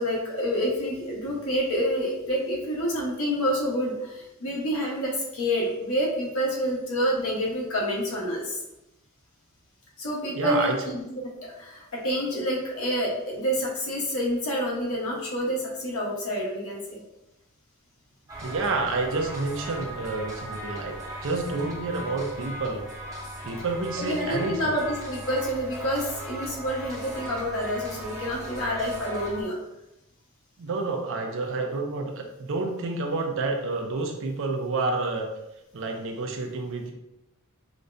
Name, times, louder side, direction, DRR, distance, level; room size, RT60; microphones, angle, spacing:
voice 1, 0.0-8.6 10.0-11.3 11.6-17.0 24.0-29.6, equal, 65° left, -3 dB, 1.0 m, -28 dB
voice 2, 10.3-10.7 18.4-21.0 21.2-22.8 23.4-24.8 30.6-35.3 35.7-36.9, right 3 dB, 60° right, 3 dB, 0.5 m, -29 dB
sound 1, 18.3-29.4, right 1 dB, 15° right, 0.8 m, -38 dB
4.9 x 2.1 x 2.5 m, 0.91 s
head